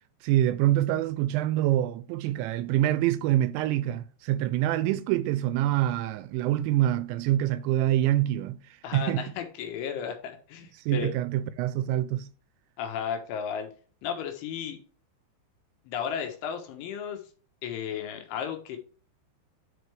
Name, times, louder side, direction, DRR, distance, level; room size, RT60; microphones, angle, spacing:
voice 1, 0.2-9.3 10.8-12.3, right 13 dB, 85° right, 2.6 m, -26 dB
voice 2, 8.8-11.1 12.8-13.7 14.0-14.8 15.9-17.2 17.6-18.8, left 8 dB, 80° left, 3.6 m, -34 dB
11.0 x 4.6 x 3.2 m
omnidirectional pair, 5.5 m